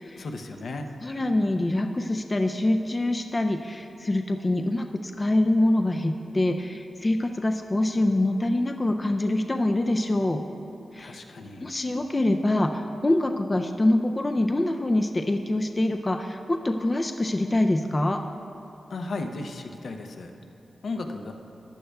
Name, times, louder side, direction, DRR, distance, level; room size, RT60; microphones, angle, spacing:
voice 1, 0.2-0.9 11.0-11.7 18.9-20.3 20.8-21.3, left 3 dB, 70° left, 5 dB, 0.6 m, -35 dB
voice 2, 1.0-10.4 10.9-11.2 11.6-18.2, left 1 dB, 25° left, 5 dB, 0.3 m, -25 dB
14.5 x 9.9 x 2.3 m, 2.8 s
wide cardioid pair, 100°, 0 cm